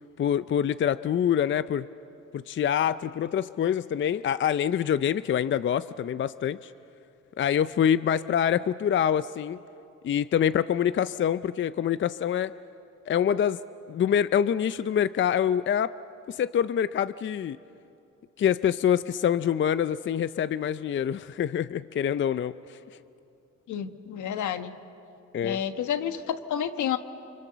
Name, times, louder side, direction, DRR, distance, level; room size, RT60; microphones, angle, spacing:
voice 1, 0.2-1.9 2.3-6.7 7.4-9.6 10.0-12.5 13.1-13.6 13.9-15.9 16.3-17.6 18.4-22.8 25.3-25.6, left 9 dB, 40° left, 14 dB, 0.5 m, -25 dB
voice 2, 23.7-24.7 25.4-27.0, left 9 dB, 75° left, 9 dB, 1.4 m, -30 dB
30.0 x 25.0 x 6.8 m, 2.7 s
cardioid pair, 90°, 30 cm